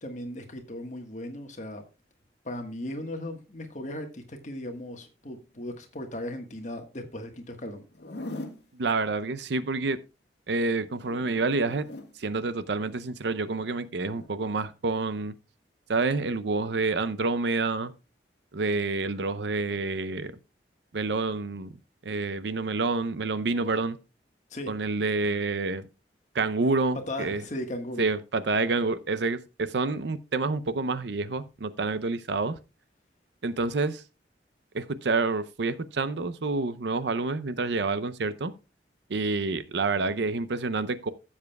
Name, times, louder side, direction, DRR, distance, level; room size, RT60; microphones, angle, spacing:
voice 1, 0.0-1.8 2.4-7.8 24.5-24.7 27.1-28.0, left 1 dB, 45° left, 1.4 m, -37 dB
Zipper (clothing), 7.9-8.6 10.8-12.1 14.0-14.3, left 2 dB, 75° left, 1.4 m, -41 dB
voice 2, 8.7-10.0 10.5-11.9 12.2-15.3 15.9-17.9 18.5-20.3 20.9-21.7 22.0-24.0 24.7-25.8 26.3-27.4 28.0-32.6 33.4-34.0 34.7-38.5 39.1-41.1, right 3 dB, 75° right, 0.6 m, -28 dB
15.5 x 7.4 x 2.3 m
head